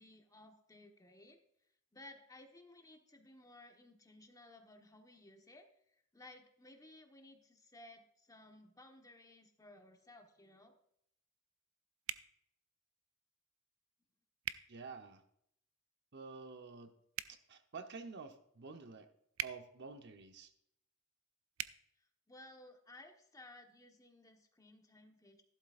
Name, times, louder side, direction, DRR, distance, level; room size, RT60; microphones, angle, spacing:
voice 1, 0.0-1.4 1.9-10.7 22.0-25.4, left 2 dB, 15° left, 4 dB, 1.2 m, -58 dB
sound 1, 12.1-12.3 14.4-14.6 17.1-17.4 19.3-19.6 21.5-21.7, right 11 dB, 80° right, 0.5 m, -40 dB
voice 2, 14.7-15.2 16.1-16.9 17.3-19.1 19.4-20.5, right 4 dB, 55° right, 7 dB, 0.9 m, -49 dB
14.5 x 12.0 x 2.5 m, 0.73 s
head